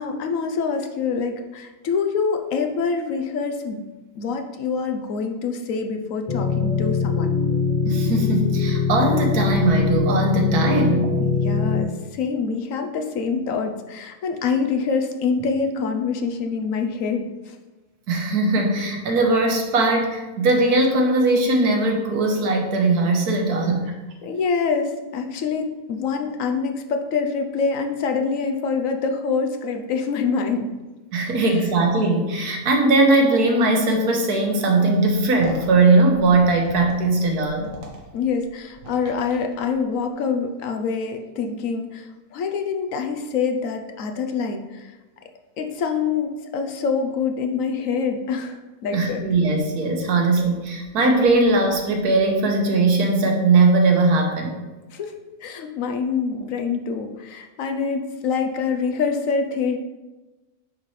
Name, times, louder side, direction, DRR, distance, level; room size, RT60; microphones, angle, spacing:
voice 1, 0.0-3.9 4.2-7.3 11.2-17.5 24.2-30.7 38.1-44.9 45.6-49.2 54.9-55.1 55.4-59.8, left 5 dB, 70° left, 5 dB, 1.0 m, -25 dB
sound 1, 6.3-11.8, left 6 dB, 40° left, 0.6 m, -22 dB
voice 2, 7.9-11.2 18.1-23.9 31.1-37.7 48.9-54.6, right 2 dB, 85° right, 2 dB, 1.5 m, -19 dB
sound 2, 35.1-40.0, right 2 dB, 60° right, 1.5 m, -41 dB
9.3 x 4.1 x 3.2 m, 1.1 s
omnidirectional pair, 1.6 m